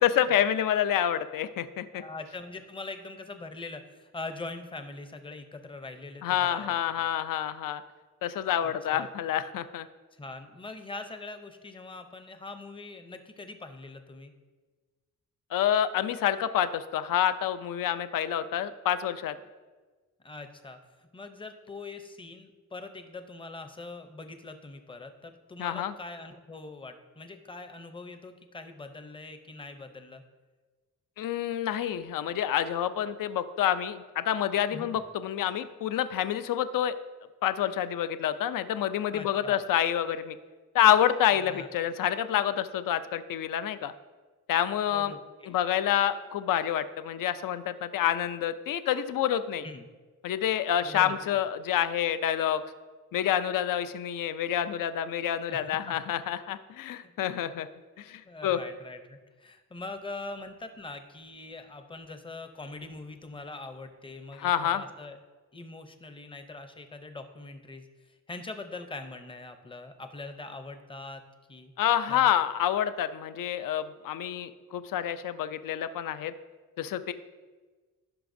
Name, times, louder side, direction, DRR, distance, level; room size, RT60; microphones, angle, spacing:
voice 1, 0.0-2.0 6.2-7.8 8.2-9.9 15.5-19.3 25.6-25.9 31.2-36.9 37.4-40.4 40.7-43.9 44.5-45.2 45.5-49.7 50.2-52.6 53.1-57.7 58.0-58.6 64.4-64.8 71.8-76.3 76.8-77.1, left 10 dB, 80° left, 12 dB, 0.5 m, -28 dB
voice 2, 1.9-7.1 8.5-9.1 10.1-14.3 20.2-30.2 34.7-35.0 39.1-39.6 41.4-41.7 44.9-45.6 49.6-49.9 50.8-51.1 55.5-55.6 55.9-56.0 56.8-57.1 58.2-65.2 65.5-67.9 68.3-71.2 71.5-71.7 72.1-72.3, left 3 dB, 15° left, 7 dB, 0.6 m, -42 dB
16.0 x 5.8 x 2.6 m, 1.4 s
wide cardioid pair, 165°, 32 cm